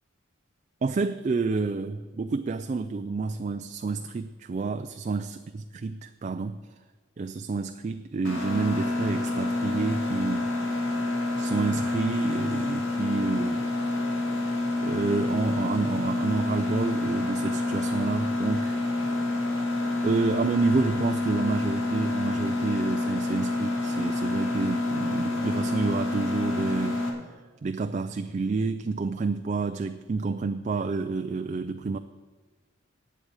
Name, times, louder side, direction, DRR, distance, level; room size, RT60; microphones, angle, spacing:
voice 1, 0.8-6.6 7.2-10.5 11.4-13.7 14.8-18.8 20.0-27.0 27.6-32.0, right 4 dB, 35° right, 9 dB, 0.3 m, -29 dB
Mechanisms, 8.2-27.1, left 2 dB, 85° left, 1.9 m, -28 dB
8.7 x 8.0 x 8.7 m, 1.4 s
head